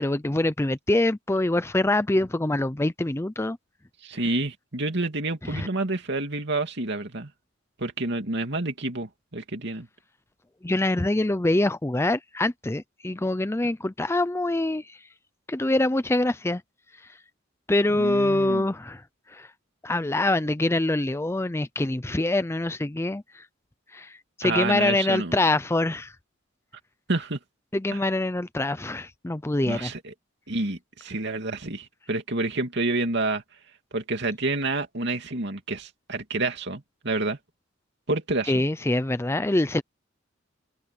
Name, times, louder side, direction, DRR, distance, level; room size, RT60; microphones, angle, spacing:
voice 1, 0.0-3.6 5.4-5.7 10.6-15.0 15.5-16.6 17.0-17.2 17.7-19.5 19.8-23.5 23.9-26.2 27.7-29.9 38.5-39.8, left 2 dB, 15° left, 0.5 m, -25 dB
voice 2, 4.0-7.3 7.8-9.9 18.0-18.6 24.4-25.3 27.1-27.4 29.7-30.0 30.5-33.4 33.9-37.4 38.1-38.5, right 2 dB, 60° right, 2.7 m, -28 dB
head